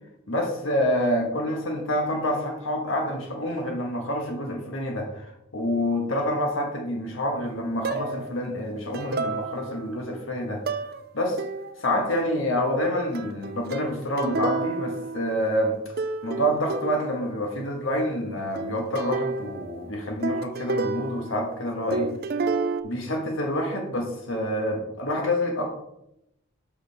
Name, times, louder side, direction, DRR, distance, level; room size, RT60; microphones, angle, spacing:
voice 1, 0.3-10.6 11.1-11.4 11.8-15.9 16.2-22.1 22.8-25.7, left 1 dB, 75° left, 2 dB, 1.3 m, -27 dB
sound 1, 7.8-8.3 8.9-9.9 10.7-11.0 11.4-11.9 13.1-15.7 16.0-17.4 18.5-21.6 21.9-22.8, right 3 dB, 45° right, 0.4 m, -31 dB
5.2 x 4.9 x 6.4 m, 0.83 s
head